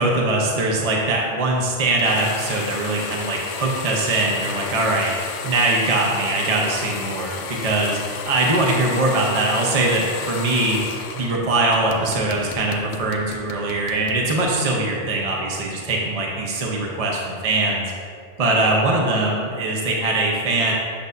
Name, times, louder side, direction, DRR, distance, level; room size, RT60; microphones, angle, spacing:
voice 1, 0.0-5.1 5.4-8.0 8.2-10.8 11.2-17.8 18.4-20.7, right 2 dB, 35° right, -1 dB, 0.8 m, -21 dB
sound 1, 2.0-11.4 11.7-14.2, left 6 dB, 85° left, 1.0 m, -32 dB
7.8 x 6.7 x 2.7 m, 2.2 s
omnidirectional pair, 1.3 m